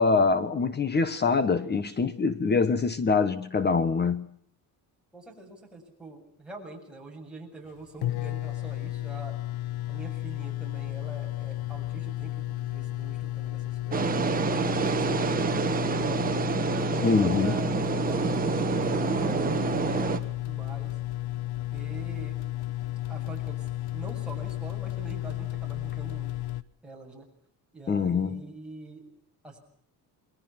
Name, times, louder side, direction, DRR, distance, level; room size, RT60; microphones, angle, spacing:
voice 1, 0.0-4.3 17.0-17.5 27.9-28.4, left 4 dB, 25° left, 1.3 m, -24 dB
voice 2, 5.1-9.4 9.9-14.4 14.7-16.3 16.7-21.0 21.7-22.4 23.1-23.7 23.9-26.3 26.8-27.3 27.7-29.0 29.4-29.6, right 2 dB, ahead, 7.7 m, -44 dB
sound 1, 7.7-7.8 8.0-26.6, left 15 dB, 90° left, 1.2 m, -33 dB
sound 2, 13.9-20.2, right 5 dB, 25° right, 1.7 m, -27 dB
29.0 x 21.5 x 6.0 m
cardioid pair, 150°, 38 cm